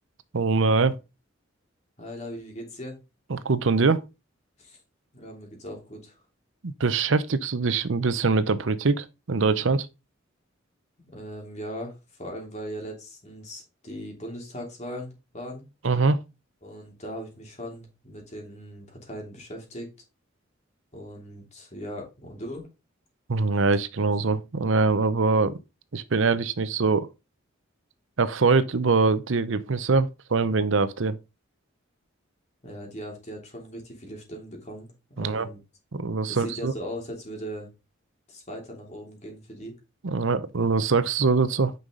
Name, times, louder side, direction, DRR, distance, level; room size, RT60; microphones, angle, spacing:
voice 1, 0.3-1.0 3.3-4.0 6.6-9.9 15.8-16.2 23.3-25.6 25.9-27.1 28.2-31.2 35.2-35.5 35.9-36.7 40.0-41.7, right 4 dB, 70° right, 0.7 m, -23 dB
voice 2, 2.0-3.0 4.6-4.8 5.1-6.2 11.1-15.6 16.6-19.9 20.9-22.7 32.6-34.9 35.2-35.6 36.3-37.7 38.3-39.7, equal, 35° left, 3.0 m, -39 dB
9.5 x 5.5 x 3.8 m
head